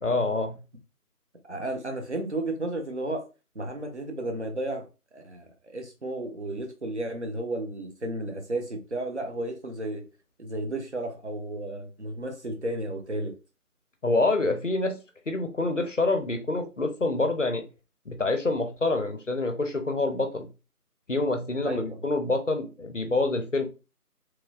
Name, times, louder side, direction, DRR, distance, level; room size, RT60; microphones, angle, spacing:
voice 1, 0.0-0.6 14.0-15.0 15.3-17.6 18.1-20.5 21.1-23.7, left 2 dB, 55° left, 6 dB, 0.5 m, -26 dB
voice 2, 1.4-3.3 3.5-4.9 5.1-10.1 10.4-13.4 21.6-22.0, right 1 dB, 50° right, 4 dB, 0.6 m, -33 dB
3.0 x 2.4 x 2.3 m, 0.30 s
figure-of-eight pair, 170°, 46 cm